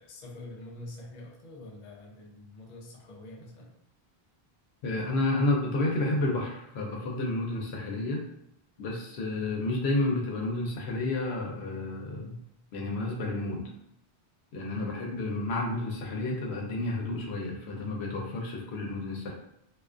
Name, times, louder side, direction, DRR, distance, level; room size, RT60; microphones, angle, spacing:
voice 1, 0.0-3.7 14.7-15.2, left 1 dB, 55° left, -1 dB, 0.5 m, -46 dB
voice 2, 4.8-8.2 8.8-12.4 12.7-13.7 14.5-19.3, left 2 dB, 80° left, 0 dB, 0.9 m, -30 dB
2.4 x 2.3 x 2.3 m, 0.77 s
omnidirectional pair, 1.1 m